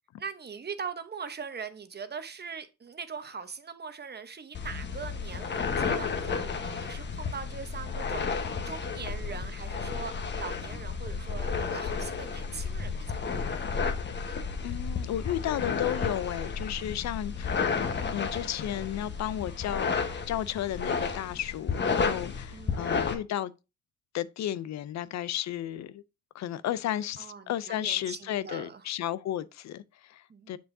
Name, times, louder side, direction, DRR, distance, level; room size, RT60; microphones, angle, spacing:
voice 1, 0.2-13.7 22.5-23.1 27.2-28.8 30.3-30.6, right 6 dB, 35° right, 1.0 m, -41 dB
sound 1, 4.5-23.1, left 5 dB, 35° left, 1.2 m, -32 dB
voice 2, 14.6-17.6 18.1-23.5 24.1-26.0 26.3-30.6, left 12 dB, 65° left, 0.5 m, -33 dB
7.0 x 6.2 x 2.7 m
cardioid pair, 90°, 30 cm